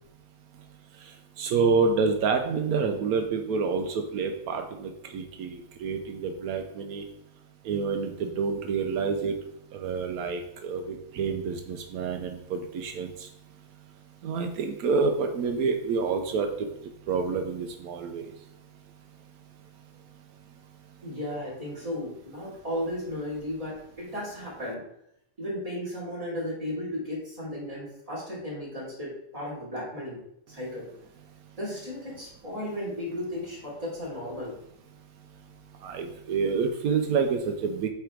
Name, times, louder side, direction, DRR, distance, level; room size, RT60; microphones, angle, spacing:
voice 1, 1.4-7.0 7.7-9.3 9.7-13.1 14.2-16.5 17.1-18.3 35.8-37.9, right 5 dB, 85° right, 5 dB, 1.1 m, -28 dB
voice 2, 21.0-24.8 25.4-30.2 30.5-30.9 31.6-34.5, left 1 dB, 25° right, -6 dB, 2.8 m, -35 dB
8.4 x 3.4 x 4.5 m, 0.77 s
omnidirectional pair, 1.5 m